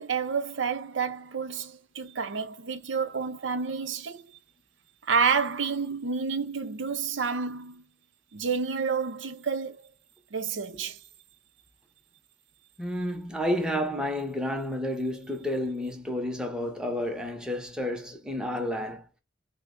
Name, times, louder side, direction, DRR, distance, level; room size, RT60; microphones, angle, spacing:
voice 1, 0.0-4.2 5.1-7.8 8.3-9.9 10.3-11.0, right 5 dB, 90° right, 0.6 m, -29 dB
voice 2, 12.8-19.0, left 1 dB, 5° right, 0.7 m, -30 dB
3.3 x 2.1 x 3.6 m
head